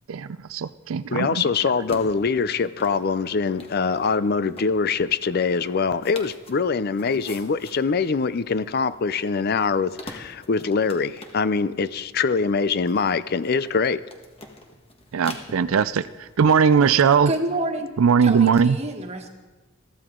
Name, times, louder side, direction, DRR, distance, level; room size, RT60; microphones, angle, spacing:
voice 1, 0.1-1.4 15.1-17.3 18.0-18.8, right 6 dB, 85° right, 0.4 m, -19 dB
voice 2, 1.1-14.0, left 5 dB, 50° left, 0.5 m, -23 dB
sound 1, 1.7-16.7, left 2 dB, 30° left, 1.5 m, -46 dB
voice 3, 17.3-17.9 18.2-19.3, right 1 dB, 30° right, 1.6 m, -28 dB
22.0 x 14.5 x 3.8 m
head